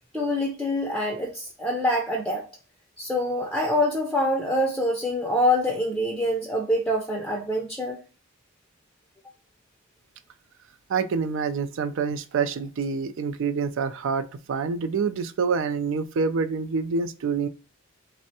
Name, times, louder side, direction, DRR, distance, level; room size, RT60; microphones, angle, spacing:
voice 1, 0.1-2.5 3.0-8.0, left 1 dB, ahead, 0.4 m, -25 dB
voice 2, 10.9-17.5, right 5 dB, 65° right, 0.4 m, -27 dB
3.4 x 2.1 x 2.6 m
head